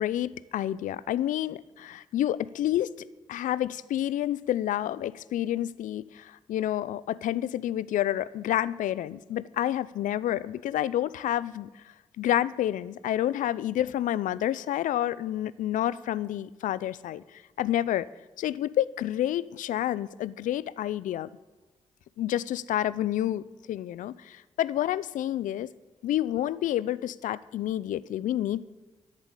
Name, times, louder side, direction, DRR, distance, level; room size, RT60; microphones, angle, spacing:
voice 1, 0.0-2.9 3.3-11.7 12.2-18.1 18.4-21.3 22.2-25.7 26.0-28.6, left 12 dB, 85° left, 19 dB, 0.4 m, -29 dB
11.0 x 8.9 x 9.7 m, 1.2 s
supercardioid pair, 45°, 13 cm